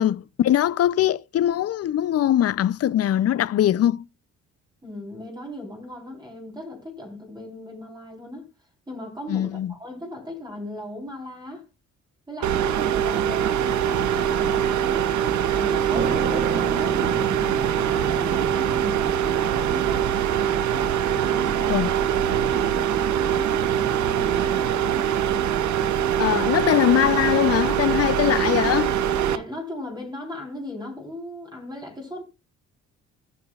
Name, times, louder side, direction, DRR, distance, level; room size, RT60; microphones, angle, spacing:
voice 1, 0.0-4.0 9.3-9.7 21.7-21.9 26.2-29.0, left 11 dB, 55° left, 0.6 m, -21 dB
voice 2, 4.8-8.5 8.9-11.7 12.3-15.1 15.5-20.1 20.7-24.8 29.2-32.2, left 1 dB, 15° right, 3.9 m, -38 dB
sound 1, 12.4-29.4, right 9 dB, 70° right, 0.8 m, -23 dB
sound 2, 16.0-23.3, right 5 dB, 35° right, 1.0 m, -34 dB
18.0 x 6.1 x 2.4 m
cardioid pair, 90°, 30 cm